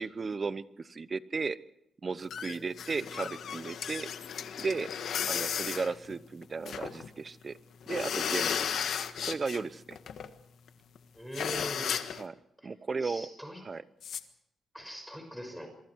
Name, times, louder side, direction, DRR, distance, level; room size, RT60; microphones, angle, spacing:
voice 1, 0.0-1.6 2.0-4.1 4.6-4.9 5.3-7.6 7.9-8.6 9.2-10.0 12.1-12.3 12.6-13.3 13.6-13.8, right 4 dB, 40° right, 15 dB, 0.9 m, -35 dB
sound 1, 2.3-7.1 7.4-7.5 7.8-9.6 9.9-10.3 10.7-10.8 11.0-11.1 11.3-12.2 14.0-14.2, left 8 dB, 75° left, 1.5 m, -34 dB
voice 2, 11.1-12.0 13.0-13.6 14.7-15.7, equal, ahead, 4 dB, 6.0 m, -41 dB
27.0 x 23.5 x 4.8 m, 0.83 s
cardioid pair, 90°, 0 cm